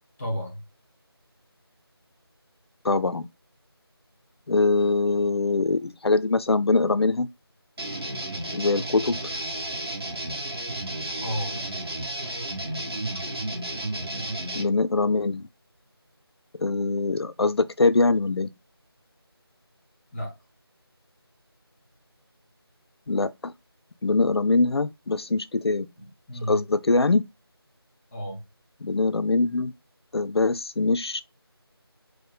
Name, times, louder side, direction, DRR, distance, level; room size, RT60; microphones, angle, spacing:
voice 1, 0.2-0.6 11.2-11.7 20.1-20.4 26.0-26.6 28.1-28.4, equal, 5° left, 0.5 m, -32 dB
voice 2, 2.8-3.3 4.5-7.3 8.5-9.3 14.5-15.5 16.6-18.5 23.1-23.5 24.0-25.9 26.5-27.2 28.8-29.7 30.1-31.2, left 3 dB, 75° left, 0.4 m, -23 dB
sound 1, 7.8-14.6, right 1 dB, 70° right, 1.4 m, -32 dB
4.6 x 2.2 x 4.7 m
figure-of-eight pair, 170°, 13 cm